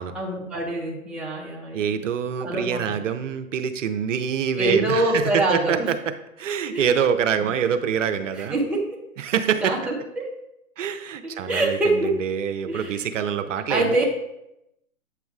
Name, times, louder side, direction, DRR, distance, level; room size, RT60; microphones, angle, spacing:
voice 1, 0.1-1.9 2.4-3.0 4.6-5.9 6.7-6.9 7.4-7.5 8.3-8.9 9.6-10.3 11.5-12.2 12.7-13.0 13.7-14.0, right 1 dB, 5° right, -3 dB, 0.7 m, -25 dB
voice 2, 1.7-6.0 6.4-8.6 9.2-9.9 10.8-14.0, right 8 dB, 65° right, 8 dB, 0.6 m, -25 dB
7.9 x 6.9 x 2.4 m, 0.86 s
hypercardioid pair, 130°, 42 cm